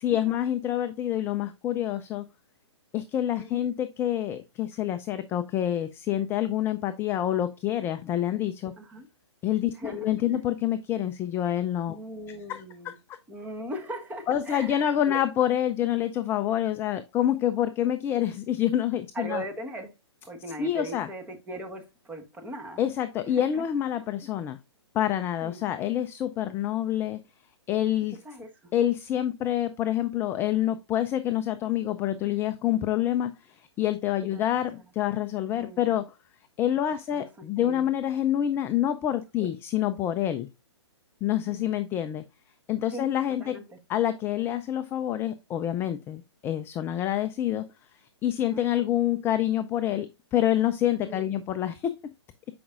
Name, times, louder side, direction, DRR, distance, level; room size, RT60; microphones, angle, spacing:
voice 1, 0.0-2.2 2.9-8.7 9.4-12.0 12.3-12.9 14.3-19.4 20.6-21.1 22.8-24.6 24.9-27.2 27.7-28.2 28.7-36.1 36.6-40.5 41.2-42.2 42.7-43.6 43.9-47.6 48.2-50.1 50.3-52.0, left 11 dB, 15° left, 0.3 m, -27 dB
voice 2, 8.8-9.1 9.7-10.4 11.9-13.0 13.3-15.3 19.1-19.9 20.3-22.8 23.3-23.6 23.9-24.0 25.4-25.6 28.2-28.5 34.3-34.4 35.5-36.0 37.1-37.9 39.4-39.5 41.5-41.8 42.9-43.1 43.4-43.8 48.4-48.6 51.0-51.3, equal, 10° right, 1.3 m, -39 dB
8.4 x 5.1 x 2.4 m
hypercardioid pair, 125°, 15 cm